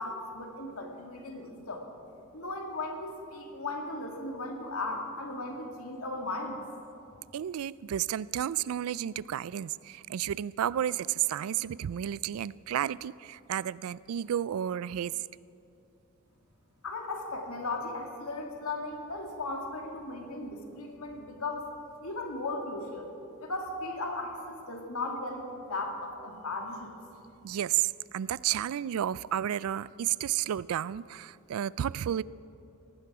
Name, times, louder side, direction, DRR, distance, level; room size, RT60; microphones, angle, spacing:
voice 1, 0.0-1.8 2.3-6.6 16.8-21.7 22.0-23.1 23.4-26.9, left 2 dB, 80° left, 2 dB, 2.2 m, -36 dB
voice 2, 7.3-15.2 27.4-32.2, right 10 dB, 75° right, 21 dB, 0.3 m, -32 dB
18.5 x 15.0 x 4.9 m, 2.7 s
head